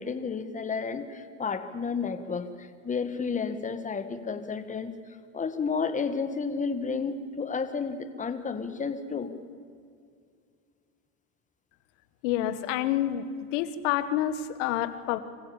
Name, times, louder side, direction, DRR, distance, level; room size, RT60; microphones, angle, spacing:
voice 1, 0.0-2.5 2.8-4.9 5.3-9.3, left 5 dB, 20° left, 9 dB, 1.7 m, -31 dB
voice 2, 12.2-13.2 13.5-15.2, left 12 dB, 70° left, 12 dB, 1.6 m, -28 dB
25.5 x 15.5 x 7.3 m, 2.3 s
supercardioid pair, 105°, 39 cm